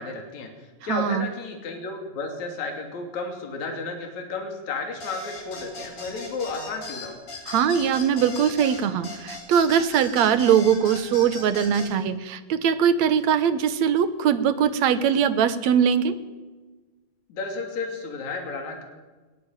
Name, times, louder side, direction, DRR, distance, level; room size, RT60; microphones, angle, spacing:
voice 1, 0.0-7.2 17.3-18.8, left 3 dB, 60° left, 3 dB, 4.0 m, -33 dB
voice 2, 0.9-1.3 7.5-16.1, right 8 dB, 65° right, 13 dB, 2.1 m, -21 dB
sound 1, 5.0-11.9, left 2 dB, 80° left, 7.3 m, -38 dB
20.0 x 18.0 x 9.1 m, 1.3 s
omnidirectional pair, 3.8 m